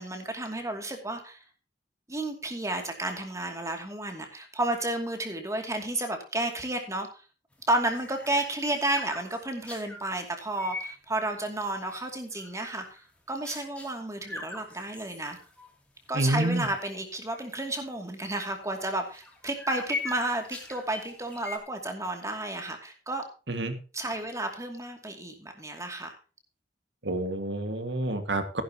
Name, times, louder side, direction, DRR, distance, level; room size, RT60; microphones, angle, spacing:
voice 1, 0.0-1.4 2.1-7.1 7.7-12.8 13.3-15.4 16.1-23.2 23.9-26.1, right 1 dB, 20° right, 4 dB, 2.6 m, -32 dB
sound 1, 7.6-10.0 10.5-10.9 11.4-12.0 12.4-13.0 13.4-13.9 14.2-15.7 16.0-16.1 16.5-16.8 17.3-17.4 18.8-21.6, left 2 dB, 5° left, 2.9 m, -40 dB
voice 2, 16.1-16.7 23.5-23.8 27.0-28.6, right 2 dB, 75° right, 8 dB, 2.1 m, -28 dB
14.5 x 11.5 x 3.0 m, 0.34 s
head